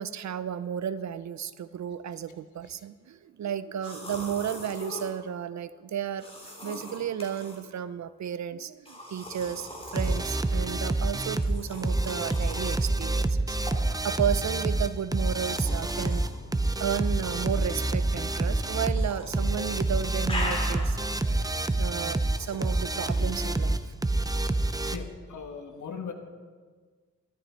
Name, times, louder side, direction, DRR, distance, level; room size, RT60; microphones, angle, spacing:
voice 1, 0.0-6.3 6.6-16.2 16.8-23.9, right 8 dB, 65° right, 15 dB, 0.6 m, -33 dB
sound 1, 3.8-5.1 6.2-7.6 8.9-10.3 11.3-12.8 13.7-13.9 15.1-16.3 17.3-17.9 18.8-19.4 19.7-21.1 22.2-23.3, left 1 dB, 20° left, 3.6 m, -40 dB
sound 2, 10.0-25.0, right 2 dB, 10° right, 0.6 m, -27 dB
sound 3, 16.2-21.7, equal, 50° left, 2.1 m, -47 dB
voice 2, 24.9-26.1, left 6 dB, 75° left, 4 dB, 1.5 m, -38 dB
13.0 x 13.0 x 4.5 m, 1.5 s
cardioid pair, 80°, 31 cm